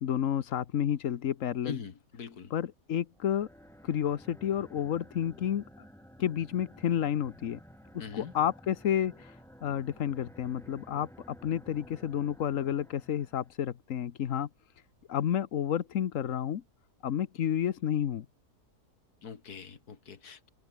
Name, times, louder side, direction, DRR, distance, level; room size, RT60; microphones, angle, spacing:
voice 1, 0.0-1.8 2.5-3.5 3.8-5.9 6.2-7.6 7.9-9.3 9.6-14.5 15.1-16.6 17.0-18.3, left 9 dB, 60° left, 1.3 m, -30 dB
voice 2, 1.6-2.5 8.0-8.3 19.2-20.5, left 6 dB, 85° left, 2.4 m, -42 dB
sound 1, 3.1-13.6, equal, ahead, 8.0 m, -53 dB
omnidirectional pair, 1.6 m